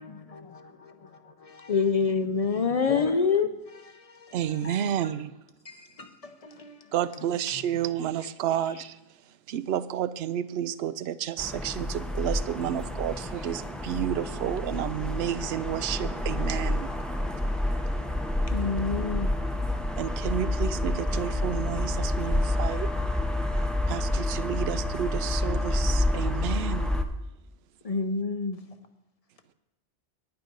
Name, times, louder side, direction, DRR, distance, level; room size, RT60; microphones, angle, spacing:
voice 1, 0.0-1.8 2.5-3.2 3.7-5.1 5.6-7.6 8.5-8.8, left 4 dB, 35° left, 0.8 m, -45 dB
voice 2, 1.7-3.5 18.5-19.3 27.8-28.6, left 5 dB, 50° left, 0.4 m, -25 dB
voice 3, 4.3-5.3 6.9-9.0 9.5-16.9 20.0-22.9 23.4-26.9, right 10 dB, 70° right, 0.8 m, -31 dB
sound 1, 11.4-27.0, left 1 dB, ahead, 0.6 m, -29 dB
10.0 x 9.2 x 5.3 m
omnidirectional pair, 1.1 m